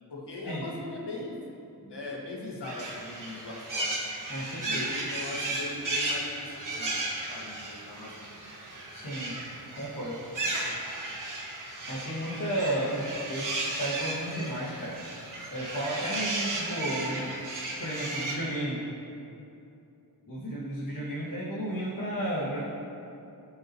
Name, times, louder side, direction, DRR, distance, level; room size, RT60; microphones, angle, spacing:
voice 1, 0.1-1.4 1.9-4.0 4.6-8.3 12.8-12.9, left 2 dB, 90° left, -3 dB, 1.8 m, -40 dB
sound 1, 2.6-18.3, right 2 dB, 50° right, 1.9 m, -35 dB
voice 2, 4.3-4.9 8.9-9.3 9.8-10.5 11.9-14.9 15.5-17.3 17.8-18.8 20.3-22.6, right 1 dB, 50° left, -11 dB, 2.4 m, -33 dB
17.0 x 6.5 x 3.1 m, 2.8 s
wide cardioid pair, 145°, 40 cm